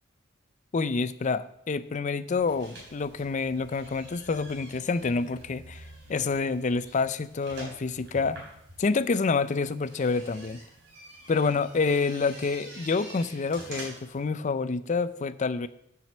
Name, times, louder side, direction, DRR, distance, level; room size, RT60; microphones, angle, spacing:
voice 1, 0.7-5.8 6.1-8.4 8.8-10.6 11.3-15.7, left 4 dB, 40° left, 15 dB, 0.4 m, -28 dB
sound 1, 2.3-14.2, right 1 dB, 60° right, 4.1 m, -47 dB
7.3 x 6.3 x 7.4 m, 0.75 s
head